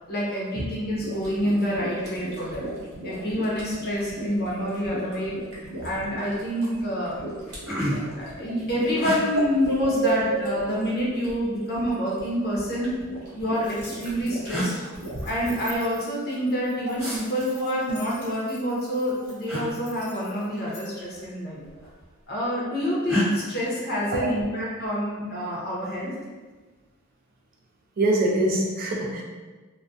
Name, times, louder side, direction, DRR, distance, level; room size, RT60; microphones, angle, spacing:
voice 1, 0.1-2.7 3.0-5.4 5.8-7.2 7.9-13.0 13.3-14.7 15.2-21.6 22.3-26.1, equal, 45° left, -5 dB, 0.7 m, -27 dB
sound 1, 0.9-15.7, right 1 dB, 80° right, 0.8 m, -39 dB
sound 2, 6.1-6.4 6.9-7.0 7.3-8.2 9.0-9.2 10.4-11.1 12.2-13.1 14.0-14.1 14.5-14.7 17.0-17.2 19.5-19.7 21.0-21.3 21.6-22.2 23.1-23.3, left 1 dB, 10° right, 1.1 m, -30 dB
sound 3, 13.5-20.8, left 2 dB, 90° left, 0.8 m, -47 dB
voice 2, 28.0-29.2, right 2 dB, 40° right, -1 dB, 0.3 m, -24 dB
2.3 x 2.1 x 2.5 m, 1.3 s
head